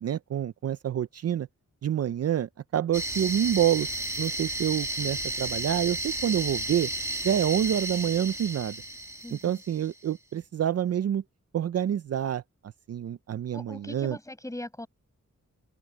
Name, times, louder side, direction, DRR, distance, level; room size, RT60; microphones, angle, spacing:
voice 1, 0.0-1.5 1.8-3.9 4.2-6.9 7.2-8.8 9.3-11.2 11.5-12.4 12.9-14.2, right 10 dB, 55° right, 0.4 m, -27 dB
sound 1, 2.9-9.9, right 1 dB, 10° right, 1.3 m, -33 dB
voice 2, 9.2-9.6 13.5-14.9, left 1 dB, 10° left, 6.0 m, -40 dB
wide cardioid pair, 155°, 29 cm